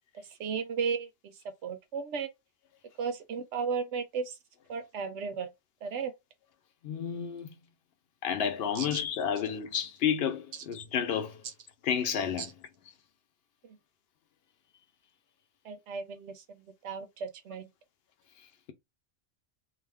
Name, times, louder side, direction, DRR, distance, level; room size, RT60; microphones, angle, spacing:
voice 1, 0.1-2.3 3.0-4.4 4.7-5.5 5.8-6.1 8.7-9.0 11.4-11.5 12.4-12.5 13.6-13.8 15.6-17.7, right 6 dB, 80° right, 0.9 m, -35 dB
voice 2, 6.8-7.5 8.2-11.4 11.8-12.5, left 8 dB, 65° left, 0.8 m, -31 dB
2.5 x 2.4 x 3.3 m
omnidirectional pair, 1.2 m